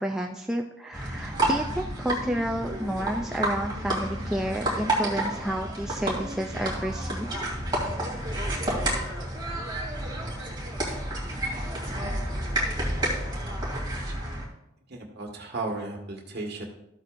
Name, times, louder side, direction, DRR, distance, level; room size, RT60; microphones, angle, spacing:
voice 1, 0.0-7.3, right 1 dB, 5° right, 1 dB, 0.4 m, -30 dB
sound 1, 0.9-14.5, right 1 dB, 20° right, 2.6 m, -30 dB
voice 2, 14.9-16.7, right 2 dB, 50° right, 1 dB, 1.6 m, -34 dB
13.5 x 8.1 x 2.5 m, 0.84 s
head